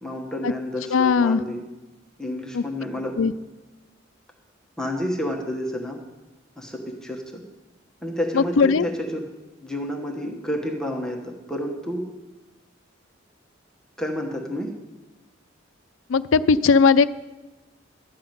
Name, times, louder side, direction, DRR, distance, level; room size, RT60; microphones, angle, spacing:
voice 1, 0.0-1.6 2.2-3.2 4.8-6.0 6.6-7.4 8.0-9.3 9.6-12.1 14.0-14.7, left 1 dB, 5° left, -1 dB, 1.1 m, -30 dB
voice 2, 0.9-1.4 2.5-2.6 3.2-3.3 8.3-8.9 16.1-17.1, left 5 dB, 90° left, 14 dB, 0.5 m, -18 dB
13.0 x 5.8 x 9.2 m, 1.1 s
head